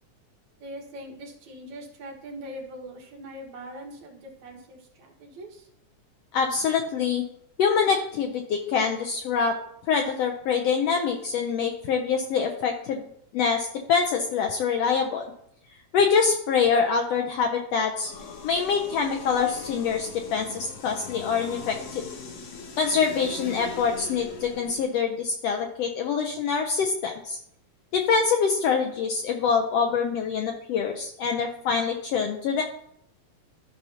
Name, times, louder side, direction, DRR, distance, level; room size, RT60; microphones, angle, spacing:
voice 1, 0.6-5.7, equal, 70° right, 0 dB, 2.8 m, -42 dB
voice 2, 6.3-7.2 7.6-9.6 9.9-13.0 13.3-15.2 15.9-18.1 18.4-22.0 22.8-27.4 27.9-32.6, left 6 dB, 85° left, 2 dB, 1.4 m, -25 dB
sound 1, 18.0-24.9, left 4 dB, 65° left, 2.0 m, -40 dB
13.5 x 5.6 x 2.8 m, 0.73 s
omnidirectional pair, 3.6 m